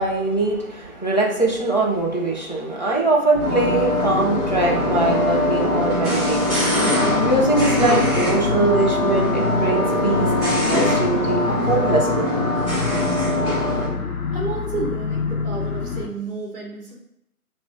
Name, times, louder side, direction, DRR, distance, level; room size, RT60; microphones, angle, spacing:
voice 1, 0.0-6.8 7.2-12.4, right 2 dB, 30° left, -3 dB, 0.5 m, -22 dB
sound 1, 3.3-16.1, left 5 dB, 85° left, 0.7 m, -28 dB
sound 2, 3.4-13.9, left 1 dB, 15° right, 1.3 m, -22 dB
voice 2, 14.3-16.9, right 4 dB, 40° right, -1 dB, 0.7 m, -31 dB
6.9 x 2.4 x 2.5 m, 0.80 s
figure-of-eight pair, 150°, 44 cm